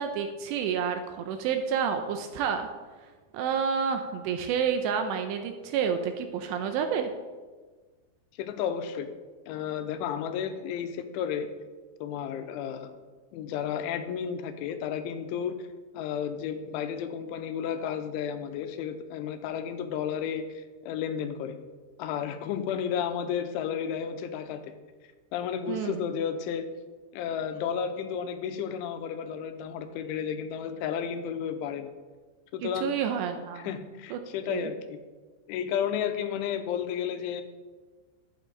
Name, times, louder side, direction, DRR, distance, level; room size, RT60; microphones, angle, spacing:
voice 1, 0.0-2.7 3.3-7.1 25.7-26.1 32.6-33.7 34.1-34.2 34.5-34.7, right 7 dB, 80° right, 6 dB, 2.6 m, -29 dB
voice 2, 8.4-9.1 9.5-11.5 12.0-12.9 13.3-15.6 15.9-21.6 22.0-24.7 25.3-26.7 27.1-31.9 32.5-32.9 33.6-35.0 35.5-37.4, left 8 dB, 85° left, 9 dB, 3.1 m, -32 dB
12.0 x 8.9 x 3.9 m, 1.3 s
omnidirectional pair, 5.4 m